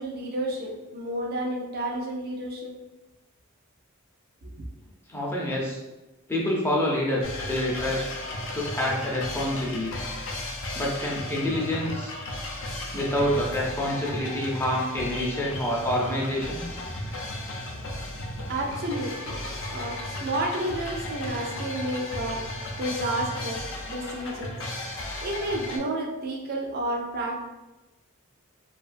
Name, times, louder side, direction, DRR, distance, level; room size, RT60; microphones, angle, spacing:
voice 1, 0.0-2.7 18.5-19.4 19.7-22.4 22.8-24.5 25.2-27.5, right 1 dB, 45° right, 0 dB, 0.5 m, -31 dB
voice 2, 5.1-5.8 6.3-8.0 8.5-9.9 10.7-12.1 12.9-16.7, left 1 dB, 10° left, -3 dB, 0.5 m, -27 dB
sound 1, 7.2-25.8, left 1 dB, 65° left, 0.5 m, -35 dB
2.8 x 2.3 x 2.5 m, 1.1 s
head